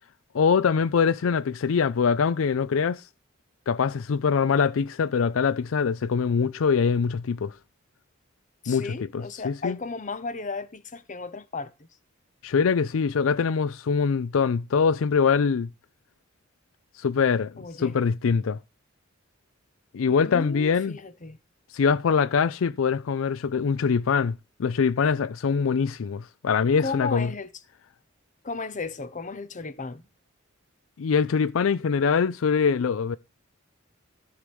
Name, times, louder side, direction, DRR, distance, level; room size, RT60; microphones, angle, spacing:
voice 1, 0.3-3.0 3.7-7.5 8.7-9.8 12.4-15.7 17.0-17.5 17.8-18.6 19.9-21.0 21.7-24.3 24.6-27.3 31.0-33.2, left 6 dB, 80° left, 0.4 m, -23 dB
voice 2, 8.6-11.9 17.6-18.0 20.1-21.4 26.8-27.5 28.4-30.0, left 4 dB, 40° left, 0.9 m, -35 dB
13.5 x 4.9 x 5.3 m
head